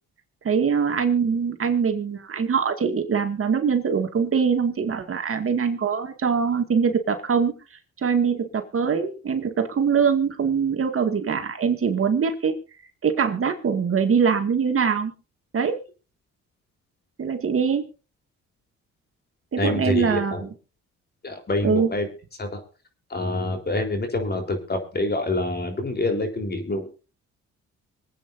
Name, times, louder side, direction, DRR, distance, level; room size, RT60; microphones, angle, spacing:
voice 1, 0.4-7.5 8.0-12.5 13.0-15.1 15.5-15.8 17.2-17.8 19.5-20.5 21.6-21.9, right 6 dB, 45° right, 5 dB, 2.3 m, -23 dB
voice 2, 19.6-20.4 21.2-22.1 22.4-22.6 23.1-26.9, left 2 dB, 35° left, 5 dB, 4.0 m, -26 dB
25.0 x 9.0 x 2.7 m, 0.34 s
cardioid pair, 90°, 30 cm